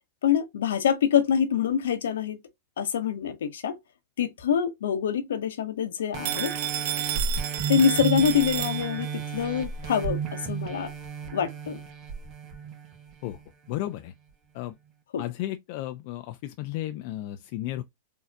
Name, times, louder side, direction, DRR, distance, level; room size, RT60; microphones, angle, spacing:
voice 1, 0.2-2.4 2.8-3.8 4.2-6.5 7.7-10.9 11.3-11.8 15.1-15.2, left 8 dB, 80° left, 0.8 m, -25 dB
sound 1, 6.1-13.3 13.9-14.0, right 5 dB, 40° right, 1.0 m, -33 dB
Telephone, 6.3-9.3, right 14 dB, 65° right, 0.4 m, -31 dB
voice 2, 13.7-14.1 14.5-14.7 15.2-17.8, left 14 dB, 55° left, 0.4 m, -33 dB
4.0 x 2.7 x 2.2 m
hypercardioid pair, 110°, 0 cm